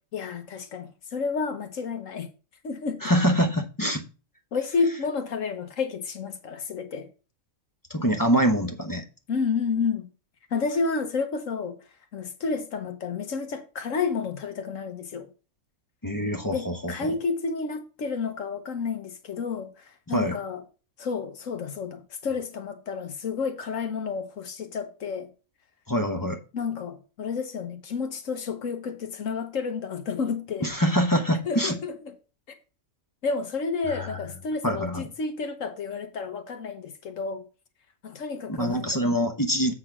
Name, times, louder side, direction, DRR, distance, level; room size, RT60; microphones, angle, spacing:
voice 1, 0.1-2.3 2.6-3.0 4.5-7.1 9.3-10.0 10.5-11.8 12.1-15.3 16.5-19.7 20.1-20.6 21.0-25.3 26.5-30.7 31.5-32.1 33.2-34.9 35.2-37.4 38.0-39.1 39.6-39.7, left 5 dB, 70° left, 1.4 m, -30 dB
voice 2, 3.0-4.0 7.9-9.0 16.0-17.1 20.1-20.4 25.9-26.4 30.6-31.8 33.9-34.1 34.6-35.1 38.5-39.7, equal, 20° left, 0.7 m, -25 dB
8.1 x 3.9 x 6.0 m
omnidirectional pair, 1.4 m